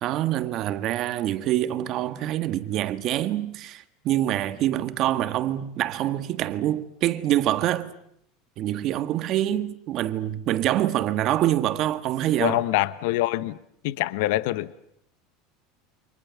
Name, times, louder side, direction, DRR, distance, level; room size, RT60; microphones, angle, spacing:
voice 1, 0.0-7.9 8.6-12.6, right 13 dB, 35° right, 1.6 m, -25 dB
voice 2, 12.4-13.6 13.8-14.8, left 16 dB, 60° left, 1.1 m, -25 dB
30.0 x 26.5 x 7.1 m
supercardioid pair, 175°, 0 cm